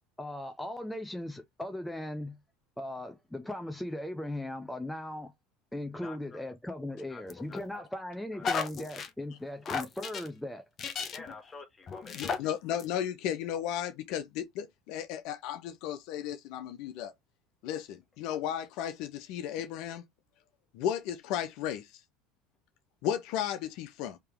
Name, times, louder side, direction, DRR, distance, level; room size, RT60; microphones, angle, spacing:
voice 1, 0.2-2.4 2.8-5.3 5.7-10.6, left 1 dB, 5° left, 0.6 m, -38 dB
voice 2, 6.0-6.4 7.1-7.2 7.5-7.9 8.3-8.4 11.1-12.5, left 4 dB, 20° left, 1.4 m, -48 dB
sound 1, 7.3-7.8 8.4-9.1 9.7-10.3 10.8-11.3 11.9-12.4 12.8-12.9, left 5 dB, 40° left, 0.8 m, -34 dB
voice 3, 12.1-17.1 17.6-20.0 20.7-22.0 23.0-24.2, left 10 dB, 65° left, 0.4 m, -34 dB
3.4 x 2.8 x 3.5 m
hypercardioid pair, 80°, 0 cm